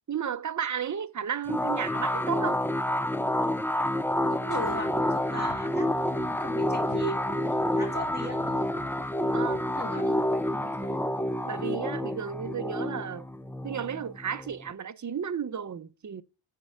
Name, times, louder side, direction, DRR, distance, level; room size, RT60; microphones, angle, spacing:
voice 1, 0.1-2.6 9.3-9.6 9.9-10.1 11.4-13.3 13.6-16.2, right 8 dB, 40° right, 0.6 m, -33 dB
sound 1, 1.5-14.7, left 1 dB, 5° left, 0.4 m, -29 dB
voice 2, 4.3-8.7 9.7-11.1, equal, 20° left, 2.2 m, -38 dB
sound 2, 4.5-11.0, left 4 dB, 70° left, 1.7 m, -52 dB
8.8 x 4.6 x 6.2 m
wide cardioid pair, 90°, 44 cm